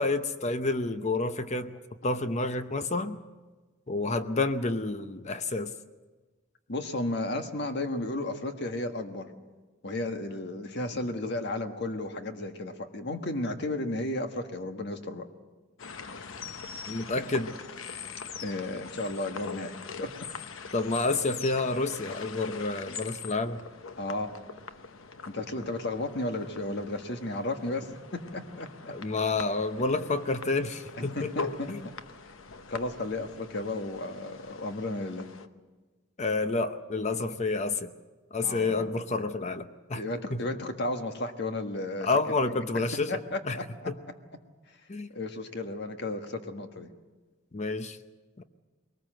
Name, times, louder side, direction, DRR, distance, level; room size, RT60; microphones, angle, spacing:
voice 1, 0.0-3.2 3.9-5.7 16.9-17.5 20.7-23.6 28.9-31.3 31.7-31.9 36.2-37.9 38.3-40.0 40.3-40.4 42.0-43.6 43.9-44.0 44.9-45.1 47.5-48.0 48.4-48.5, left 3 dB, 35° left, 10 dB, 0.7 m, -29 dB
voice 2, 6.7-9.3 9.8-15.3 18.4-20.1 24.0-24.3 25.3-28.9 31.0-31.7 32.7-35.3 38.4-38.9 39.9-42.1 43.1-44.1 44.7-44.8 45.1-46.9, left 2 dB, 55° left, 6 dB, 1.6 m, -33 dB
sound 1, 15.8-35.5, left 5 dB, 80° left, 0.9 m, -43 dB
21.5 x 19.5 x 7.7 m, 1.3 s
head